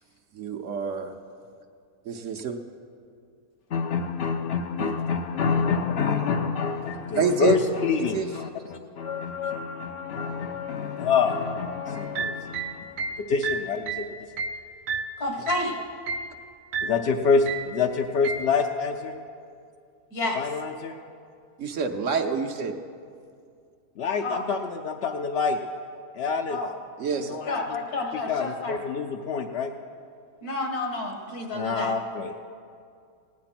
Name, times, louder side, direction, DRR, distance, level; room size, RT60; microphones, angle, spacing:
voice 1, 0.3-1.1 2.1-2.6 4.8-4.9 7.2-7.6 8.1-8.3 21.6-22.8 27.0-27.4, right 5 dB, 60° right, 5 dB, 1.1 m, -27 dB
voice 2, 3.7-14.0 16.8-19.1 20.3-21.0 24.0-25.6 26.1-26.6 27.3-27.8 28.1-29.7 31.5-32.4, left 5 dB, 60° left, 3 dB, 0.7 m, -27 dB
sound 1, 12.0-15.7 16.1-16.4 16.7-17.1 17.5-17.8 18.2-18.5, right 5 dB, 90° right, 1.2 m, -32 dB
voice 3, 15.2-15.8 20.1-20.4 24.2-24.4 26.5-26.7 27.5-28.8 30.4-31.9, left 2 dB, 85° left, 2 dB, 2.2 m, -30 dB
17.0 x 9.6 x 5.9 m, 2.3 s
omnidirectional pair, 1.6 m